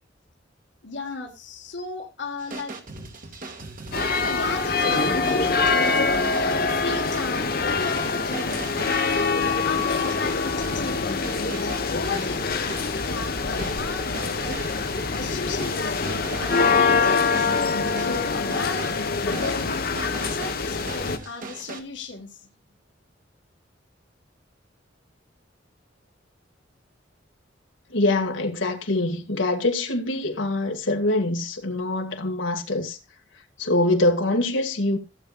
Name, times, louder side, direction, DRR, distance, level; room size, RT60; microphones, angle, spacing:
voice 1, 0.8-2.8 4.2-11.2 11.5-12.8 13.0-14.6 15.1-16.1 16.4-17.6 18.0-19.0 19.3-22.5, left 3 dB, 70° left, 1.8 m, -35 dB
sound 1, 2.4-21.8, right 3 dB, 45° right, 1.8 m, -39 dB
sound 2, 3.9-21.2, left 4 dB, 55° left, 1.1 m, -24 dB
voice 2, 27.9-33.0 33.6-35.0, left 2 dB, 90° left, 2.0 m, -24 dB
16.0 x 8.1 x 2.5 m
head